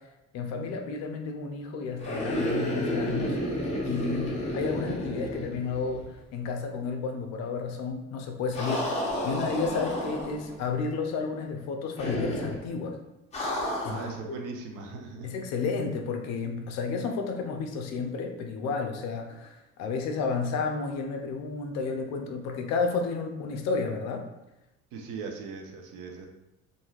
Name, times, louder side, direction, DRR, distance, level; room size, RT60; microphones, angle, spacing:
voice 1, 0.3-3.4 3.8-6.0 6.3-13.0 13.8-14.1 15.2-24.3, left 4 dB, 60° left, 4 dB, 0.5 m, -32 dB
sound 1, 2.0-6.1 6.4-6.5 8.5-10.5 12.0-12.6 13.3-14.2, left 1 dB, 20° left, 0.7 m, -31 dB
voice 2, 13.9-15.3 24.9-26.3, right 4 dB, 70° right, 2 dB, 0.6 m, -39 dB
3.1 x 2.5 x 2.4 m, 0.96 s
cardioid pair, 130°, 31 cm